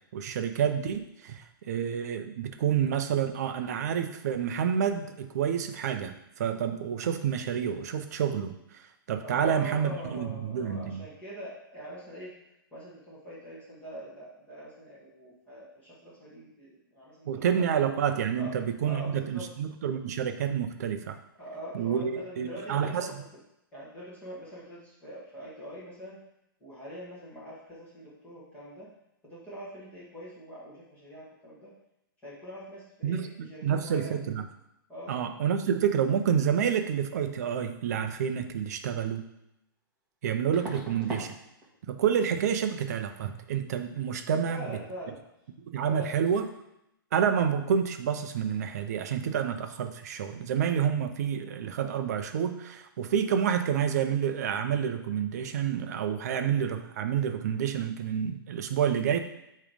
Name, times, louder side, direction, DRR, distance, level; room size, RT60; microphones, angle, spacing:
voice 1, 0.1-11.0 17.3-21.2 21.7-23.1 33.0-34.4 35.1-39.2 40.2-41.3 41.9-44.6 45.6-46.4 47.1-59.2, right 8 dB, 45° right, 7 dB, 0.7 m, -29 dB
voice 2, 9.2-12.4 12.7-17.7 18.3-18.5 18.8-19.5 21.4-23.4 23.7-26.2 26.6-28.9 29.2-31.7 32.2-34.2 34.9-35.2 44.3-45.2 45.9-46.2, equal, 10° left, -8 dB, 1.9 m, -43 dB
sound 1, 39.0-39.1 40.5-41.3 41.6-42.0 42.3-42.4 45.4-45.5 45.7-46.0 46.3-46.4, right 2 dB, 10° right, 1.3 m, -41 dB
8.8 x 3.3 x 5.1 m, 0.83 s
hypercardioid pair, 165°, 12 cm